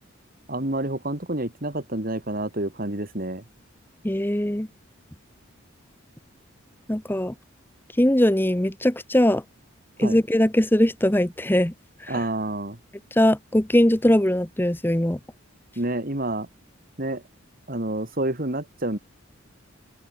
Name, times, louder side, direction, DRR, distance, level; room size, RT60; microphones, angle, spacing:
voice 1, 0.5-3.4 10.0-10.2 12.1-12.8 15.8-16.5 17.0-17.2 17.7-19.0, right 1 dB, 45° right, 2.4 m, -28 dB
voice 2, 4.0-4.7 6.9-7.3 8.0-9.4 10.0-11.7 12.0-12.2 13.1-15.2, left 1 dB, 10° left, 0.9 m, -21 dB
open air
head